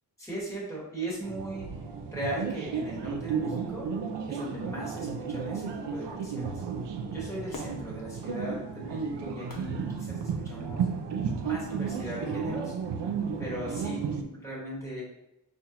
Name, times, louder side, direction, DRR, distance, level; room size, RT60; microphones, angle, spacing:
voice 1, 0.2-1.7 2.1-3.9 4.3-6.7 7.1-10.9 11.4-12.7 13.4-15.0, right 1 dB, 5° left, -6 dB, 1.4 m, -38 dB
sound 1, 1.2-14.2, right 6 dB, 75° right, 0.5 m, -33 dB
Fireworks, 7.5-10.8 11.4-11.5, left 3 dB, 55° left, 0.6 m, -48 dB
5.6 x 2.5 x 2.8 m, 0.87 s
wide cardioid pair, 140°, 42 cm